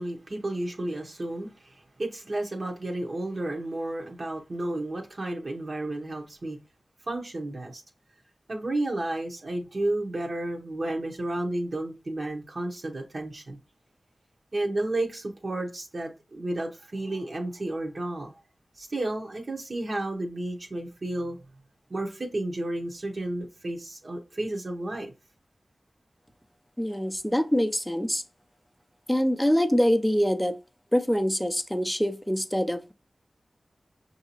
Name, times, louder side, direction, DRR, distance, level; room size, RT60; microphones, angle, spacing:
voice 1, 0.0-6.6 7.1-7.8 8.5-13.6 14.5-18.3 18.8-21.4 21.9-25.1, right 1 dB, 60° right, 0.8 m, -32 dB
voice 2, 26.8-28.2 29.1-30.6 30.9-32.9, equal, 5° left, 0.5 m, -24 dB
5.8 x 2.7 x 2.9 m
wide cardioid pair, 55°, 0 cm